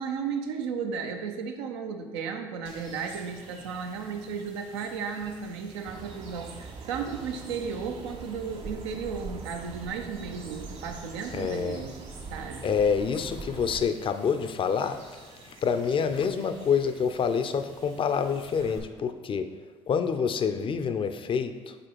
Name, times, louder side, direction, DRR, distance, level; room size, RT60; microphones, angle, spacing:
voice 1, 0.0-11.9 12.3-12.7, right 6 dB, 85° right, 5 dB, 0.6 m, -34 dB
sound 1, 2.6-18.8, right 3 dB, 60° right, 1.7 m, -51 dB
sound 2, 5.9-13.8, right 4 dB, 40° right, 0.5 m, -42 dB
voice 2, 11.3-11.8 12.6-15.0 15.4-19.5 19.9-21.8, left 6 dB, 40° left, 9 dB, 0.5 m, -27 dB
5.0 x 4.1 x 4.6 m, 1.4 s
hypercardioid pair, 60°, 14 cm